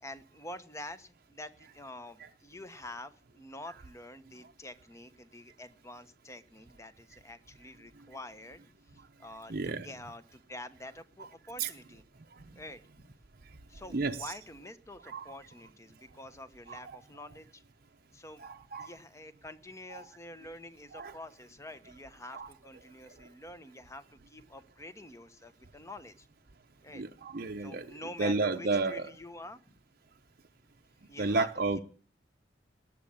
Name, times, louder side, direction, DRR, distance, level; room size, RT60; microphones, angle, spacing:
voice 1, 0.0-8.6 8.9-12.0 12.5-12.8 13.7-17.6 18.1-18.4 18.8-26.3 26.8-27.0 27.6-29.7 31.0-31.5, left 1 dB, 15° left, 1.1 m, -47 dB
voice 2, 9.5-9.9 11.6-11.7 13.9-14.4 15.1-15.3 16.7-17.0 18.4-18.9 19.9-20.0 20.9-21.2 22.3-22.5 26.9-29.2 31.2-31.8, right 3 dB, 50° right, 0.8 m, -32 dB
19.0 x 7.6 x 8.7 m
head